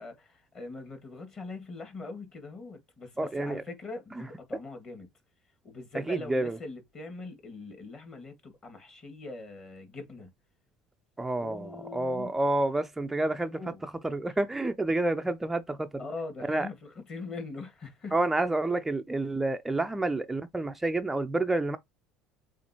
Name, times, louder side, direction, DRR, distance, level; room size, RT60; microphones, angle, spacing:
voice 1, 0.0-5.1 5.6-10.3 11.4-12.4 13.5-13.9 16.0-18.2, left 3 dB, 30° left, 1.9 m, -42 dB
voice 2, 3.2-3.6 6.1-6.6 11.2-15.9 16.5-16.7 18.1-21.8, right 2 dB, 10° right, 0.3 m, -29 dB
7.1 x 2.5 x 2.9 m
cardioid pair, 135°, 3 cm